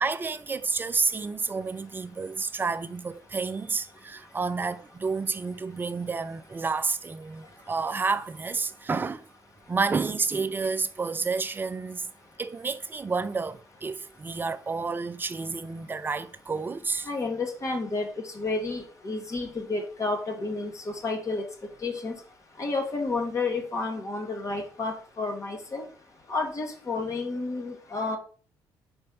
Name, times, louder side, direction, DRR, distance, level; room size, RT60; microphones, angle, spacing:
voice 1, 0.0-9.3 9.7-12.1 12.4-17.1, right 4 dB, 25° right, 0.5 m, -30 dB
voice 2, 17.1-21.4 21.8-22.1 22.6-25.8 26.3-28.2, left 3 dB, 40° left, 1.6 m, -31 dB
4.5 x 4.3 x 5.4 m
cardioid pair, 90°, 8 cm